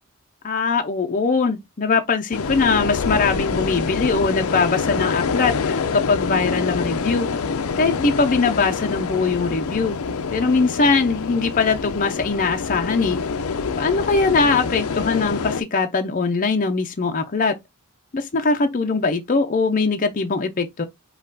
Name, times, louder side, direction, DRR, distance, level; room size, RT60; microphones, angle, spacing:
voice 1, 0.4-7.3 7.8-10.0 10.3-13.2 13.8-17.6 18.1-20.8, left 4 dB, 40° left, 0.6 m, -21 dB
sound 1, 2.3-15.6, left 5 dB, 80° left, 0.6 m, -26 dB
5.5 x 2.3 x 3.9 m
head